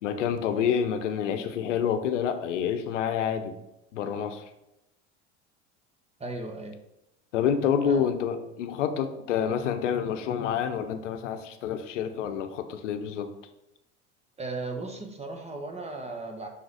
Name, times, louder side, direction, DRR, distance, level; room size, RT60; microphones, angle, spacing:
voice 1, 0.0-3.5 3.9-4.5 7.3-13.3, left 8 dB, 90° left, 8 dB, 0.7 m, -28 dB
voice 2, 6.2-6.8 7.8-8.1 14.4-16.5, right 3 dB, 20° right, 4 dB, 1.2 m, -36 dB
5.6 x 3.9 x 4.8 m, 0.89 s
hypercardioid pair, 90°, 35 cm